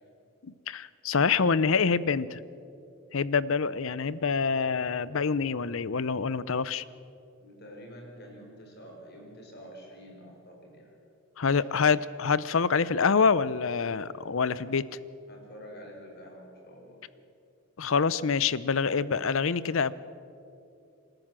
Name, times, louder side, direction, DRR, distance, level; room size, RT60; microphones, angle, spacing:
voice 1, 0.4-2.4 3.1-6.8 11.4-14.8 17.8-19.9, left 5 dB, 65° left, 18 dB, 0.6 m, -26 dB
voice 2, 7.4-10.9 11.6-11.8 14.5-14.7 15.3-17.0, equal, 45° left, 1 dB, 4.7 m, -48 dB
28.0 x 13.0 x 7.5 m, 2.7 s
head